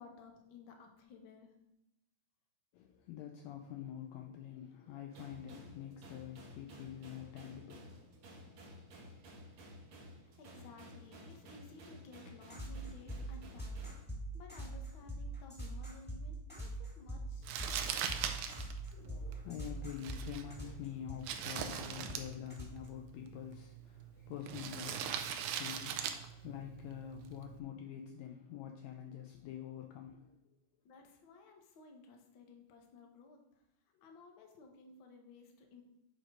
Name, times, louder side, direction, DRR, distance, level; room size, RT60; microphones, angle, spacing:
voice 1, 0.0-1.5 10.2-13.9 14.1-17.5 17.7-18.7 30.8-33.6 34.0-35.8, left 3 dB, 60° left, 3 dB, 1.4 m, -56 dB
voice 2, 2.7-8.9 18.9-30.4, left 10 dB, 80° left, 3 dB, 1.6 m, -47 dB
sound 1, 5.1-14.0, equal, 55° right, 1.4 m, -54 dB
sound 2, 12.5-22.9, right 1 dB, 5° left, 1.7 m, -43 dB
Crumpling crinkling, 17.4-27.6, right 8 dB, 85° right, 2.1 m, -42 dB
7.7 x 4.3 x 4.9 m, 0.89 s
omnidirectional pair, 3.4 m